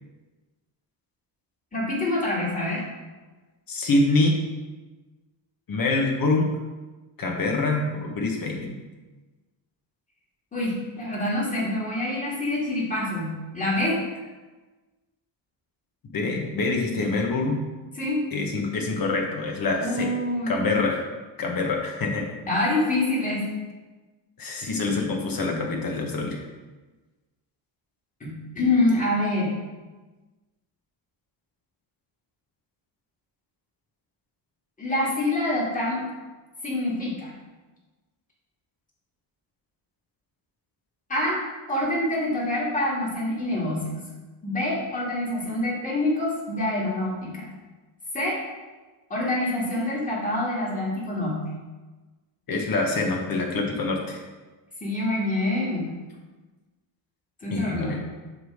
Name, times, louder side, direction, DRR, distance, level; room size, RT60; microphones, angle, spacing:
voice 1, 1.7-2.8 10.5-14.0 17.9-18.2 19.8-20.7 22.5-23.5 28.2-29.5 34.8-36.1 36.6-37.3 41.1-41.4 41.7-44.0 44.4-47.5 48.1-48.4 49.1-51.5 54.8-55.9 57.4-58.0, left 1 dB, 15° left, -5 dB, 2.5 m, -26 dB
voice 2, 3.7-4.3 5.7-6.5 7.2-8.7 16.1-17.6 18.3-20.1 20.5-21.0 21.4-22.3 24.4-26.4 52.5-54.2 57.5-58.0, left 3 dB, 50° left, 0 dB, 1.7 m, -25 dB
7.6 x 3.7 x 6.5 m, 1.2 s
cardioid pair, 125°, 46 cm